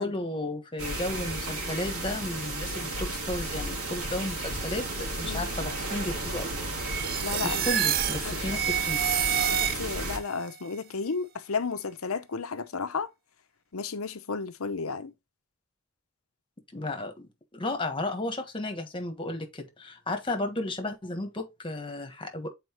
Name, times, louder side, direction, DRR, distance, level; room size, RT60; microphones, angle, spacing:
voice 1, 0.0-6.7 7.4-9.0 16.7-22.5, left 2 dB, 25° left, 1.3 m, -34 dB
sound 1, 0.8-10.2, right 2 dB, 90° right, 2.7 m, -33 dB
sound 2, 6.8-10.2, right 9 dB, 45° right, 0.4 m, -28 dB
voice 2, 7.2-7.7 8.2-8.5 9.5-13.1 13.7-15.1, left 4 dB, 80° left, 0.8 m, -33 dB
7.9 x 4.4 x 3.0 m
head